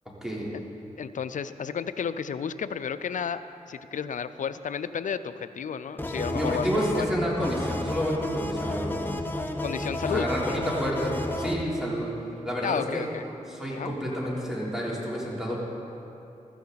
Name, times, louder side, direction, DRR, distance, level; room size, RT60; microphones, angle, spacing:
voice 1, 1.0-3.4 3.7-7.1 9.6-10.3 12.6-13.2 13.7-13.9, left 7 dB, 70° left, 12 dB, 0.5 m, -32 dB
sound 1, 6.0-11.6, left 1 dB, 15° left, 1.0 m, -31 dB
voice 2, 6.3-9.0 10.1-12.1 12.4-13.0 13.5-15.6, equal, 5° right, -5 dB, 3.5 m, -29 dB
14.0 x 14.0 x 4.1 m, 2.9 s
cardioid pair, 55°, 14 cm